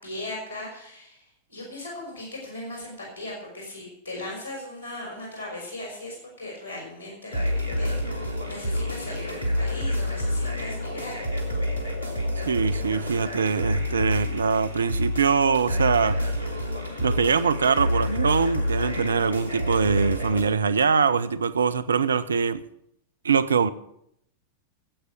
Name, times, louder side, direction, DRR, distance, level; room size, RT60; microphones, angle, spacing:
voice 1, 0.0-8.2 8.4-11.2, left 1 dB, 85° right, 5.0 m, -38 dB
sound 1, 7.3-20.4, left 1 dB, 80° left, 2.3 m, -28 dB
voice 2, 12.4-16.4 17.0-22.6 23.2-23.7, right 5 dB, 70° right, 0.6 m, -23 dB
13.5 x 8.1 x 8.4 m
figure-of-eight pair, 90°, 0 cm